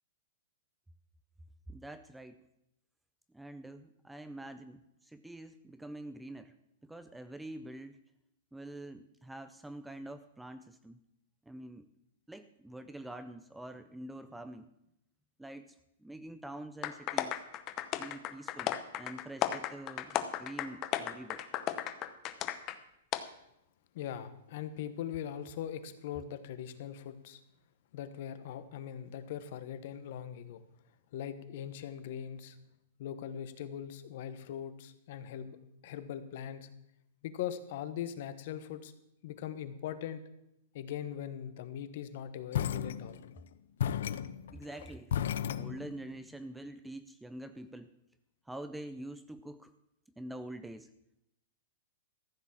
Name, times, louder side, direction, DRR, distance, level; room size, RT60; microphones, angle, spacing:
voice 1, 1.7-2.4 3.3-6.6 6.8-8.0 8.5-11.0 11.5-11.9 12.3-14.7 15.4-17.4 18.0-21.4 44.5-45.1 45.5-47.9 48.5-49.7 50.2-50.9, right 1 dB, 5° right, 11 dB, 0.4 m, -46 dB
sound 1, 16.8-22.8 23.1-23.2, left 12 dB, 25° left, 0.8 m, -35 dB
voice 2, 23.9-27.4 27.9-30.6 31.1-32.6 33.0-35.6 35.8-36.7 37.2-38.9 39.2-40.2 40.7-43.2, left 9 dB, 50° left, 11 dB, 1.2 m, -41 dB
sound 2, 42.5-43.4 43.8-46.2, left 9 dB, 65° left, 0.6 m, -34 dB
14.0 x 7.3 x 7.3 m, 0.82 s
hypercardioid pair, 160°, 0 cm